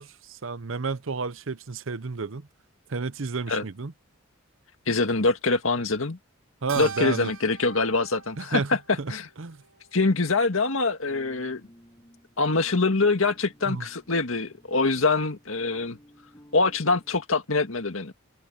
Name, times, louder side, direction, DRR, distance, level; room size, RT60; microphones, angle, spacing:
voice 1, 0.0-2.5 2.9-3.9 6.6-7.3 8.4-9.1 9.4-9.6 13.7-13.9, right 4 dB, 70° right, 0.8 m, -31 dB
voice 2, 4.9-6.2 6.7-8.6 8.9-9.3 9.9-11.6 12.4-16.0 16.5-18.1, left 3 dB, 75° left, 1.9 m, -24 dB
Keyboard (musical), 6.7-11.3, right 6 dB, 85° right, 2.8 m, -44 dB
sound 1, 11.1-17.2, equal, 20° left, 7.6 m, -55 dB
open air
head